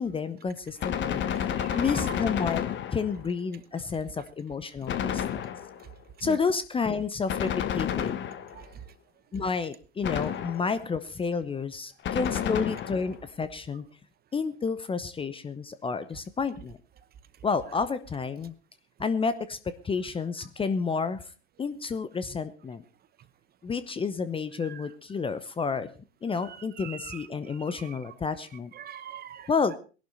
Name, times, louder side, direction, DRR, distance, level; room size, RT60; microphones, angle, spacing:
voice 1, 0.0-1.2 1.7-2.6 2.9-5.2 6.2-8.2 9.3-13.8 14.3-16.8 17.4-18.5 19.0-19.6 19.8-21.2 21.6-22.8 23.6-25.9 26.2-28.7 29.5-29.8, left 5 dB, 15° left, 13 dB, 0.8 m, -30 dB
Gunshot gunfire, 0.8-3.3 4.9-5.9 7.3-8.7 10.0-10.8 12.0-13.2, left 9 dB, 30° left, 1.4 m, -31 dB
voice 2, 1.3-2.0 6.2-6.4 8.5-8.7 24.6-24.8 26.5-28.0 28.7-29.5, right 9 dB, 25° right, 15 dB, 1.0 m, -43 dB
19.0 x 11.5 x 4.0 m, 0.35 s
hypercardioid pair, 95°, 35 cm